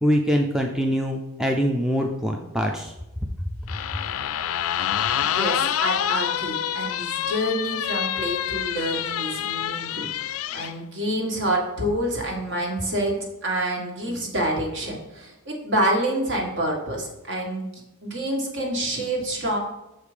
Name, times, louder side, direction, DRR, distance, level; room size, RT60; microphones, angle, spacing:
voice 1, 0.0-2.9, equal, 5° right, 1 dB, 0.4 m, -23 dB
sound 1, 3.7-10.7, left 10 dB, 65° left, 0.4 m, -27 dB
voice 2, 5.2-19.6, right 1 dB, 55° right, 0 dB, 1.7 m, -27 dB
6.5 x 5.1 x 5.0 m, 0.95 s
head